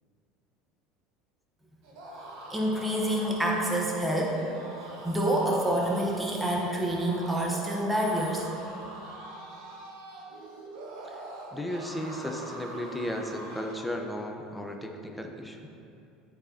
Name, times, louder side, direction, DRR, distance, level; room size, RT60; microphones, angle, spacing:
sound 1, 1.8-13.9, right 1 dB, 65° right, 1.3 m, -43 dB
voice 1, 2.5-4.4 5.0-8.5, right 1 dB, 15° right, -2 dB, 1.2 m, -27 dB
voice 2, 11.5-15.6, left 1 dB, 5° left, 3 dB, 0.9 m, -35 dB
13.5 x 4.5 x 2.9 m, 2.7 s
hypercardioid pair, 80°, 0 cm